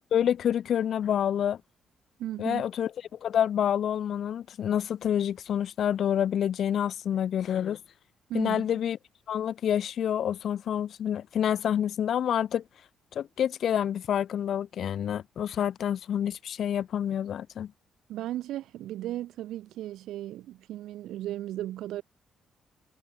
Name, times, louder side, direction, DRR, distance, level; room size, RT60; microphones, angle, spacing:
voice 1, 0.1-1.6 2.4-7.8 8.3-9.0 9.3-12.6 13.1-17.7, left 9 dB, 65° left, 1.8 m, -28 dB
voice 2, 2.2-2.6 8.3-8.7 18.1-22.0, right 13 dB, 85° right, 2.7 m, -35 dB
cardioid pair, 90°, 0 cm